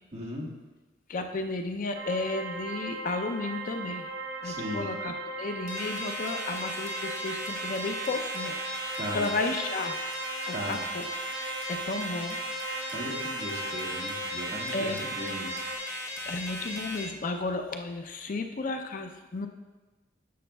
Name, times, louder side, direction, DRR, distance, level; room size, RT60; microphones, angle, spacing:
voice 1, 0.1-0.5 4.4-4.9 9.0-9.3 10.5-10.8 12.9-15.6, equal, 35° right, -3 dB, 1.5 m, -37 dB
voice 2, 1.1-4.1 4.4-10.0 10.5-11.1 11.4-12.4 14.7-15.0 16.2-19.5, left 3 dB, 50° left, 6 dB, 0.5 m, -33 dB
sound 1, 1.9-15.8, right 3 dB, 80° right, 0.7 m, -38 dB
sound 2, 5.7-17.0, left 1 dB, 15° left, 1.2 m, -37 dB
10.0 x 6.6 x 2.3 m, 1.2 s
head